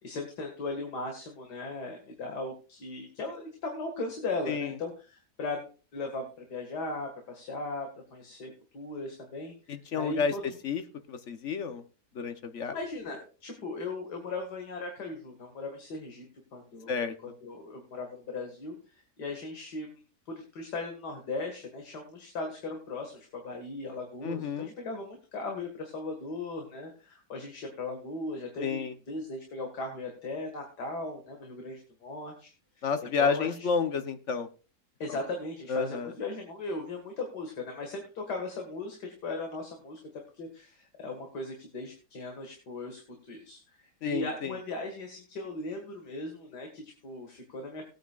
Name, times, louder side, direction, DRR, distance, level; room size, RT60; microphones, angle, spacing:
voice 1, 0.0-5.6 5.9-10.4 12.7-18.8 19.2-20.0 20.3-32.5 32.8-32.9 33.2-33.7 35.0-40.0 40.3-43.0 43.3-47.9, left 2 dB, 85° left, 3 dB, 2.4 m, -38 dB
voice 2, 9.7-10.3 10.6-10.8 11.1-11.8 12.1-12.8 16.9-17.1 24.2-24.7 28.6-28.9 32.8-34.5 35.7-36.1 44.0-44.5, left 5 dB, 55° left, 9 dB, 1.1 m, -30 dB
19.5 x 9.2 x 2.4 m, 0.35 s
omnidirectional pair, 1.7 m